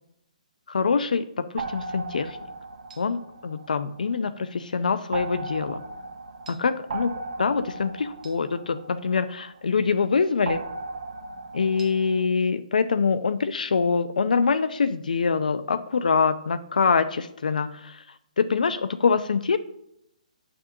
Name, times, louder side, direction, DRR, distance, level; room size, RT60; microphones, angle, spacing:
voice 1, 0.7-2.4 3.0-5.8 6.5-7.1 7.4-10.6 11.5-17.9 18.4-19.6, left 5 dB, 80° left, 12 dB, 0.5 m, -24 dB
sound 1, 1.6-4.3 5.1-9.7 10.5-12.2, right 3 dB, 70° right, 1.0 m, -37 dB
9.6 x 6.0 x 2.7 m, 0.80 s
hypercardioid pair, 150°, 4 cm